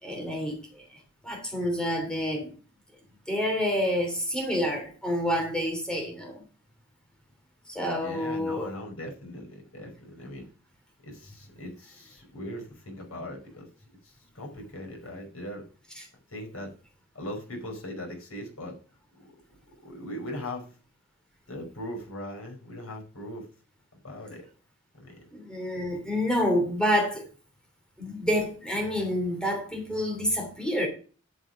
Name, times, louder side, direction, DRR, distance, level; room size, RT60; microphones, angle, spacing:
voice 1, 0.0-0.8 1.2-2.5 3.3-6.4 7.7-8.7 25.3-27.3 28.0-30.9, equal, 5° left, 3.0 m, -28 dB
voice 2, 8.0-10.5 11.0-13.7 14.3-15.6 16.3-16.7 17.1-18.8 19.8-20.6 21.5-23.4 24.0-24.5 24.9-25.3, left 1 dB, 85° left, 5.4 m, -39 dB
11.0 x 6.7 x 5.0 m
head